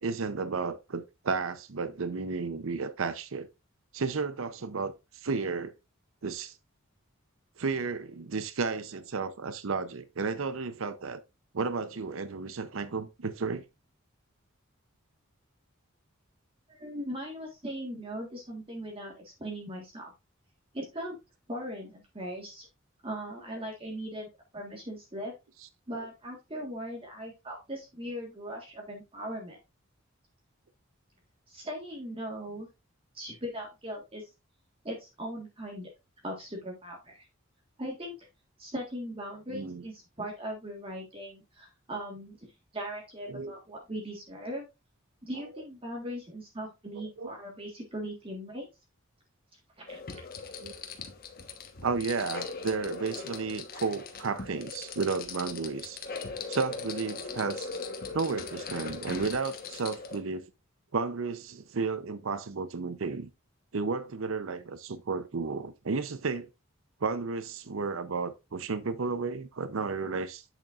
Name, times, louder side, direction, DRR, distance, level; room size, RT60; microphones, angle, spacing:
voice 1, 0.0-3.5 3.9-5.7 6.2-6.6 7.6-11.2 11.5-13.6 25.9-26.1 39.5-39.8 43.3-43.5 47.0-47.3 50.6-50.7 51.8-56.0 56.5-57.7 58.1-60.5 60.9-63.3 63.7-66.5 67.0-70.4, right 4 dB, 70° right, 0.6 m, -33 dB
voice 2, 16.7-20.1 20.7-21.2 21.5-22.7 23.0-24.3 24.5-25.3 25.9-29.6 31.5-32.7 33.1-34.3 34.8-35.9 36.2-37.3 37.8-38.3 38.6-44.6 45.2-48.7 49.8-50.0, equal, 25° right, 1.5 m, -39 dB
sound 1, 49.9-60.2, left 4 dB, 45° left, 1.2 m, -40 dB
8.2 x 7.1 x 2.5 m
head